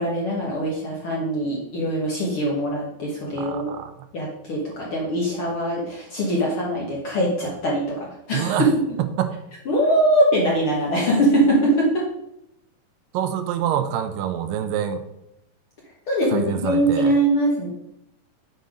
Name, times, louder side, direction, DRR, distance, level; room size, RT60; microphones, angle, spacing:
voice 1, 0.0-3.7 4.1-8.7 9.6-12.0 16.1-17.7, right 1 dB, 55° left, -3 dB, 1.5 m, -22 dB
voice 2, 3.4-3.9 8.3-8.7 9.2-9.3 13.1-15.0 16.3-17.2, right 10 dB, 85° right, 9 dB, 2.3 m, -26 dB
7.8 x 5.2 x 5.0 m, 0.83 s
omnidirectional pair, 4.0 m